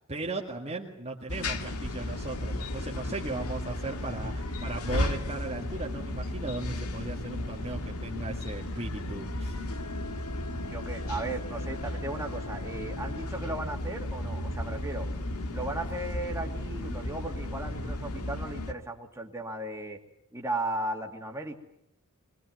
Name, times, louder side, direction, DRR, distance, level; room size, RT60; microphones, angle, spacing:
voice 1, 0.1-9.6, right 2 dB, 30° right, -1 dB, 1.9 m, -37 dB
sound 1, 1.3-18.7, left 1 dB, 85° left, 2.0 m, -34 dB
voice 2, 10.6-15.1 15.5-20.0 20.3-21.5, right 2 dB, 15° right, 1 dB, 2.5 m, -36 dB
23.5 x 21.0 x 9.5 m, 0.79 s
head